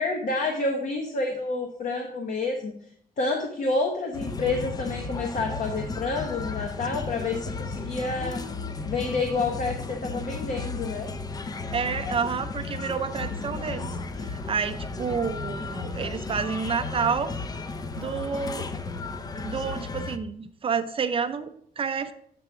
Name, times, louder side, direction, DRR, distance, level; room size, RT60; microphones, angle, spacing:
voice 1, 0.0-2.7 3.2-8.4 8.8-11.1, left 3 dB, 55° left, 2 dB, 0.9 m, -29 dB
sound 1, 4.1-20.2, left 3 dB, 25° left, 0.4 m, -34 dB
voice 2, 11.7-13.9 14.2-17.3 18.0-18.7 19.4-22.1, right 6 dB, 35° right, 9 dB, 0.5 m, -29 dB
7.6 x 3.4 x 5.8 m, 0.64 s
wide cardioid pair, 150°, 16 cm